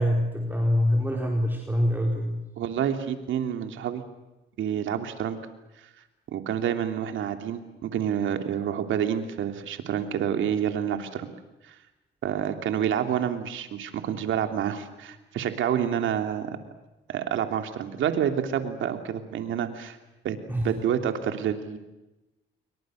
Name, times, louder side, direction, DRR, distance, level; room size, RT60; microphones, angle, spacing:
voice 1, 0.0-2.4 20.5-20.7, equal, 10° right, 1 dB, 4.3 m, -25 dB
voice 2, 2.6-4.0 4.6-5.4 6.3-11.3 11.6-11.7 12.2-16.5 17.1-20.0 20.2-20.4 20.6-21.8, right 9 dB, 75° right, 6 dB, 3.1 m, -28 dB
29.0 x 23.5 x 6.5 m, 1.0 s
cardioid pair, 90°, 20 cm